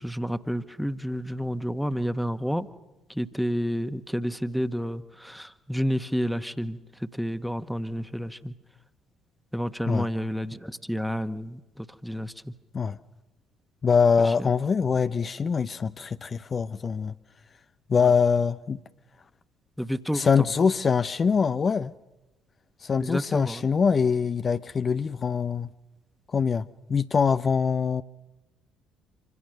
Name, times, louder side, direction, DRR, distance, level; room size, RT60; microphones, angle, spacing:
voice 1, 0.0-2.7 3.1-8.5 9.5-12.5 14.2-14.5 18.0-18.1 19.8-20.3 23.0-23.6, equal, ahead, 1.6 m, -30 dB
voice 2, 13.8-17.1 17.9-18.8 20.1-21.9 22.8-25.7 26.3-28.0, left 6 dB, 40° left, 0.8 m, -24 dB
27.0 x 25.5 x 6.6 m
figure-of-eight pair, 50°, 0 cm